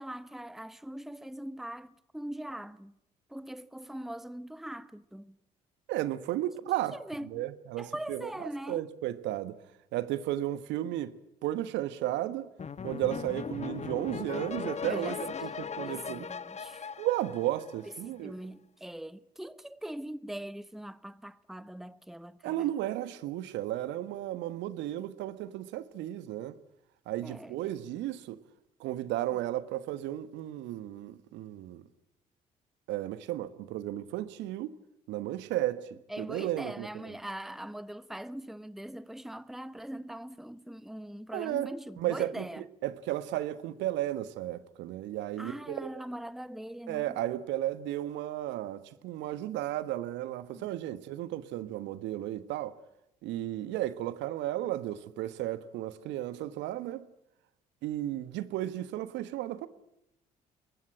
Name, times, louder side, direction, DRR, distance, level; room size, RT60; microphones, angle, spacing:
voice 1, 0.0-2.9 3.3-5.4 6.9-7.5 7.8-8.9 14.8-15.2 15.8-16.9 17.8-22.7 27.2-27.7 36.1-42.7 45.4-47.2, right 1 dB, ahead, 1.0 m, -42 dB
voice 2, 5.9-7.0 7.2-9.6 9.9-11.1 11.4-12.5 12.8-16.3 17.0-18.3 22.4-26.5 27.1-28.4 28.8-31.8 32.9-34.7 35.1-35.9 36.2-37.1 41.3-41.7 42.0-42.5 42.8-46.0 46.9-52.7 53.2-57.1 57.8-59.7, right 14 dB, 70° right, 1.4 m, -34 dB
sound 1, 12.6-18.0, left 6 dB, 35° left, 1.2 m, -38 dB
23.0 x 20.0 x 8.7 m
hypercardioid pair, 45°, 20 cm